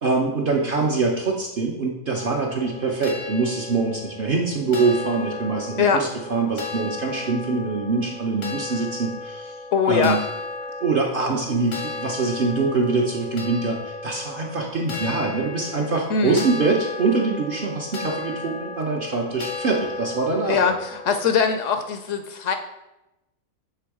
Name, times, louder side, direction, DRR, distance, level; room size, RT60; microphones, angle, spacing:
voice 1, 0.0-9.6 9.9-10.2 10.8-20.7, right 4 dB, 50° right, 0 dB, 0.7 m, -24 dB
sound 1, 2.2-21.6, left 3 dB, 85° left, 1.4 m, -35 dB
voice 2, 9.7-10.2 16.1-16.4 20.5-22.5, left 6 dB, 70° left, 7 dB, 0.8 m, -21 dB
6.9 x 3.3 x 4.7 m, 0.95 s
omnidirectional pair, 1.5 m